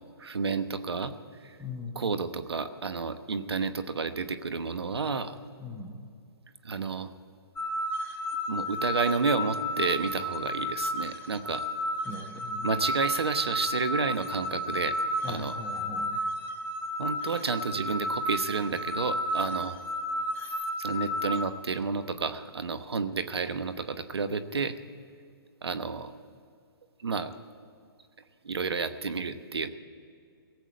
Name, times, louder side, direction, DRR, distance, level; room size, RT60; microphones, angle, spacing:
voice 1, 0.2-1.1 1.4-1.6 1.9-5.3 6.6-7.1 8.5-11.6 12.6-15.0 15.3-15.6 17.0-19.8 20.8-24.7 25.6-26.1 27.0-27.3 28.4-29.7, right 4 dB, 85° right, 10 dB, 1.0 m, -30 dB
voice 2, 1.6-2.0 5.6-6.0 12.0-12.7 15.2-16.2, left 3 dB, ahead, 1 dB, 1.4 m, -40 dB
sound 1, 7.6-21.4, left 1 dB, 15° left, 3.0 m, -32 dB
17.5 x 8.2 x 9.3 m, 2.3 s
hypercardioid pair, 140°, 13 cm